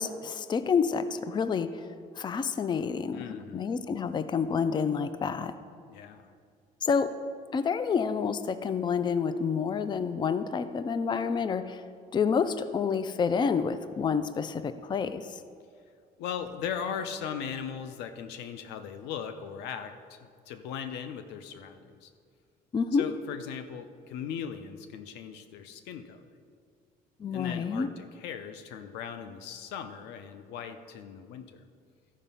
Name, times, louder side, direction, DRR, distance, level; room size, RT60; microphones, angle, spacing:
voice 1, 0.0-1.9 2.2-5.5 6.8-7.1 7.5-11.8 12.1-15.4 22.7-23.1 27.2-27.9, left 6 dB, 25° left, 12 dB, 0.4 m, -28 dB
voice 2, 3.1-3.7 5.9-6.3 16.2-22.1 22.9-26.3 27.3-31.6, left 7 dB, 90° left, 9 dB, 0.7 m, -38 dB
12.5 x 5.0 x 5.5 m, 2.2 s
cardioid pair, 110°, 17 cm